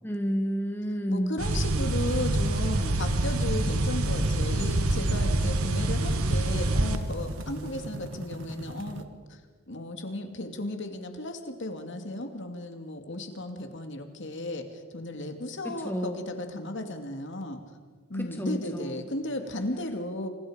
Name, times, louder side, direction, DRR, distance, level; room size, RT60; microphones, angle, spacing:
voice 1, 0.0-1.4 15.6-16.2 18.1-19.0, equal, 10° left, 3 dB, 1.5 m, -31 dB
voice 2, 1.1-9.0 9.3-9.4 9.7-17.6 18.1-20.3, left 1 dB, 55° left, 5 dB, 2.6 m, -35 dB
sound 1, 1.4-7.0, right 2 dB, 85° right, 1.7 m, -26 dB
sound 2, 1.5-9.0, right 1 dB, 60° right, 1.6 m, -39 dB
27.5 x 26.5 x 5.2 m, 1.5 s
head